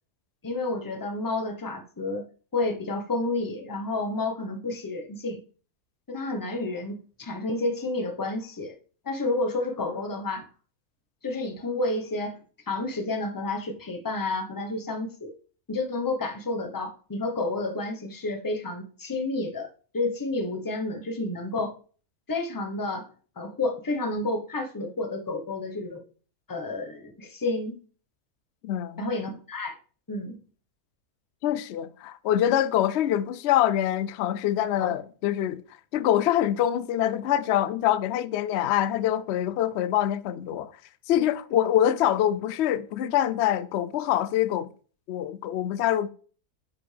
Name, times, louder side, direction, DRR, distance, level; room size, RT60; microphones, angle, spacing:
voice 1, 0.4-2.3 2.5-5.4 6.1-8.7 9.0-10.5 11.2-12.4 12.7-15.3 15.7-19.7 19.9-21.7 22.3-23.1 23.4-26.1 26.5-27.8 29.0-29.7 30.1-30.4 34.8-34.9, left 2 dB, 15° left, 0.8 m, -30 dB
voice 2, 28.6-29.0 31.4-35.6 35.9-40.7 41.1-44.7 45.1-46.1, left 11 dB, 75° left, 0.6 m, -25 dB
9.2 x 5.2 x 3.4 m
omnidirectional pair, 1.7 m